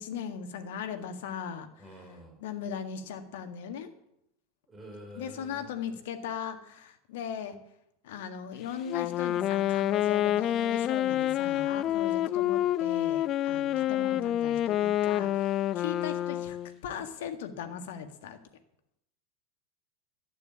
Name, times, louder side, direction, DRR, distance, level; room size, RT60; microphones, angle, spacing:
voice 1, 0.0-3.9 5.1-7.6 8.0-16.6 16.8-18.4, left 7 dB, 60° left, 8 dB, 1.8 m, -39 dB
voice 2, 1.8-2.3 4.7-5.7 11.9-12.1, equal, 20° right, 1 dB, 5.0 m, -48 dB
Wind instrument woodwind instrument, 8.9-16.7, left 12 dB, 40° left, 0.4 m, -28 dB
12.0 x 9.5 x 8.4 m, 0.78 s
figure-of-eight pair, 80°, 0 cm